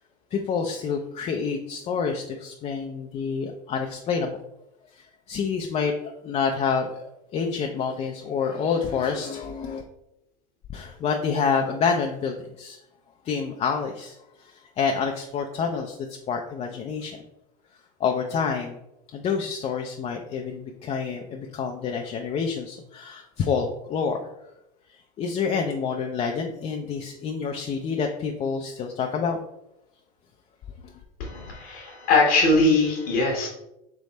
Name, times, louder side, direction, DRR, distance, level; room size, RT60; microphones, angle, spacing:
voice 1, 0.3-4.4 4.9-9.8 10.7-12.8 13.2-17.2 18.0-18.8 19.1-24.2 24.9-29.4 30.8-30.9, left 6 dB, 35° left, 3 dB, 0.4 m, -28 dB
voice 2, 31.2-33.5, left 2 dB, 70° left, -1 dB, 1.2 m, -21 dB
3.4 x 3.0 x 4.0 m, 0.86 s
hypercardioid pair, 90°, 19 cm